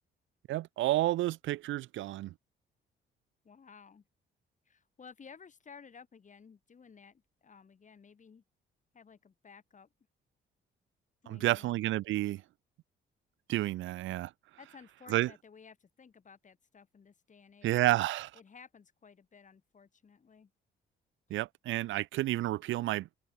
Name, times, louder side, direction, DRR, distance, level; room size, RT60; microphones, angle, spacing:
voice 1, 0.5-2.3 11.3-12.4 13.5-14.3 15.1-15.3 17.6-18.3 21.3-23.1, right 16 dB, 75° right, 0.5 m, -30 dB
voice 2, 3.4-4.0 4.7-8.4 8.9-9.9 11.2-11.8 14.6-18.0 18.3-20.5, left 6 dB, 40° left, 2.7 m, -55 dB
open air
cardioid pair, 90°, 20 cm